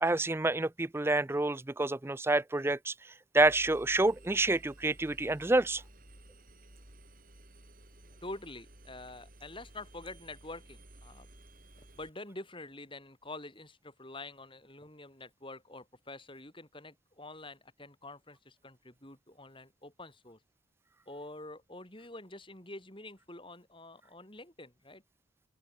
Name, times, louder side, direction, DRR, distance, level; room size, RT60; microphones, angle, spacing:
voice 1, 0.0-2.9 3.3-5.8, right 2 dB, 10° right, 0.4 m, -28 dB
Engine, 3.4-12.1, right 1 dB, 40° right, 6.9 m, -55 dB
voice 2, 8.2-11.3 11.8-20.4 21.1-25.0, left 2 dB, 25° left, 5.0 m, -47 dB
open air
head